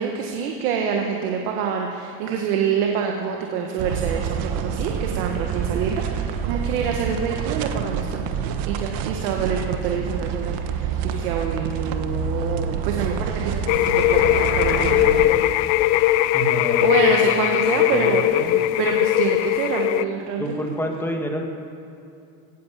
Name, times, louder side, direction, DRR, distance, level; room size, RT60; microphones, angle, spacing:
voice 1, 0.0-8.2 8.6-15.5 16.8-18.2 18.8-20.4, right 7 dB, 70° right, 1 dB, 1.7 m, -26 dB
sound 1, 3.8-15.3, right 7 dB, 50° right, 1.3 m, -27 dB
sound 2, 13.7-20.0, left 15 dB, 55° left, 0.6 m, -19 dB
sound 3, 14.1-15.7, left 5 dB, 25° left, 1.2 m, -36 dB
voice 2, 16.3-17.1 17.7-18.8 20.4-21.5, equal, 5° left, 1 dB, 1.8 m, -29 dB
17.0 x 10.0 x 7.5 m, 2.6 s
supercardioid pair, 145°, 46 cm